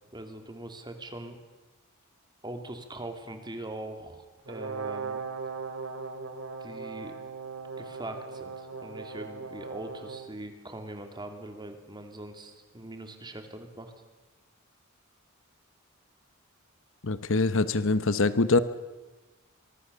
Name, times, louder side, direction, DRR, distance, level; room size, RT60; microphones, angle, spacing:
voice 1, 0.1-1.4 2.4-5.2 6.6-7.2 7.8-14.0, right 1 dB, 20° right, 6 dB, 2.8 m, -42 dB
Brass instrument, 4.5-10.3, right 4 dB, 65° right, 2.8 m, -38 dB
voice 2, 17.0-18.6, left 3 dB, 65° left, 13 dB, 1.0 m, -24 dB
24.5 x 23.5 x 7.0 m, 1.2 s
head